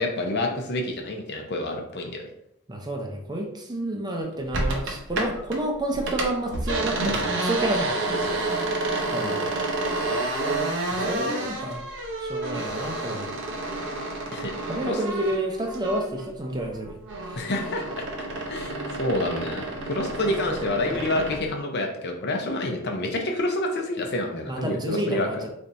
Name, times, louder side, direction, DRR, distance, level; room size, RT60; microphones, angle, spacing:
voice 1, 0.0-2.2 8.3-8.4 14.3-14.5 14.9-15.0 17.3-17.8 18.5-25.4, left 1 dB, 55° left, 3 dB, 0.6 m, -28 dB
voice 2, 2.7-7.9 9.1-9.5 10.9-11.8 12.2-13.3 14.7-17.5 20.2-20.3 20.9-21.0 24.4-25.5, right 1 dB, 20° right, 1 dB, 0.5 m, -30 dB
sound 1, 4.5-5.6 5.9-16.3 16.6-21.4, right 2 dB, 60° right, 0.7 m, -29 dB
4.0 x 3.3 x 2.6 m, 0.77 s
head